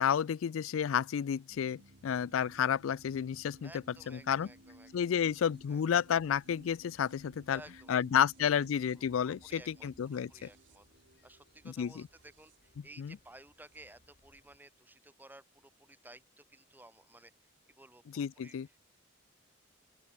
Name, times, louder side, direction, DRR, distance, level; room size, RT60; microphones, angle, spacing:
voice 1, 0.0-3.7 4.1-4.5 4.9-7.6 7.9-10.3 11.8-11.9 13.0-13.1 18.1-18.7, left 8 dB, 85° left, 0.4 m, -31 dB
sound 1, 1.5-14.0, right 1 dB, 65° right, 4.0 m, -60 dB
sound 2, 3.0-14.6, left 1 dB, 50° left, 5.1 m, -69 dB
voice 2, 3.6-5.8 7.5-8.0 8.4-8.5 8.9-10.9 11.2-17.5 17.8-19.0, right 1 dB, 10° right, 3.5 m, -56 dB
open air
head